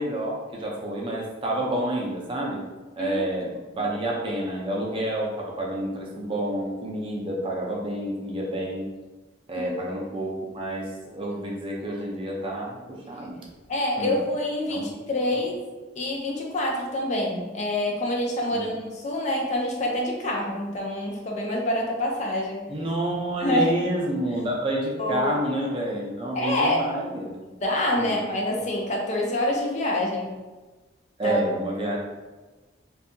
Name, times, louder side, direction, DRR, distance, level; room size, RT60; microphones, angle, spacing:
voice 1, 0.0-2.6 3.0-8.9 9.5-13.4 14.0-14.2 14.7-14.9 18.5-18.6 22.7-27.4 28.0-28.2 31.2-32.0, right 1 dB, 25° right, -2 dB, 0.4 m, -29 dB
voice 2, 13.7-15.5 16.0-22.7 23.4-23.7 25.0-25.3 26.3-26.9 27.6-30.3 31.2-31.4, left 1 dB, 35° left, -1 dB, 0.4 m, -26 dB
2.6 x 2.3 x 2.5 m, 1.2 s
head